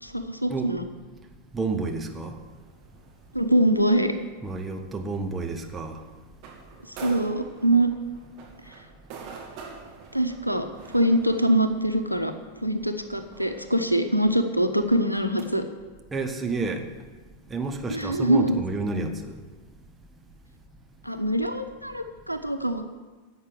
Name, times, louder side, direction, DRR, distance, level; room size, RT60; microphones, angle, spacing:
voice 1, 0.0-0.8 3.3-4.1 6.9-7.9 8.7-8.8 10.1-10.7 10.9-12.3 12.6-15.6 17.9-18.6 21.0-22.8, right 1 dB, 90° left, 8 dB, 0.9 m, -23 dB
voice 2, 1.5-2.4 4.4-6.0 16.1-16.9 17.5-19.3, right 3 dB, 15° right, 3 dB, 1.3 m, -30 dB
sound 1, 2.5-15.4, right 5 dB, 45° right, 2.4 m, -48 dB
11.5 x 8.1 x 7.8 m, 1.3 s
figure-of-eight pair, 90°, 0 cm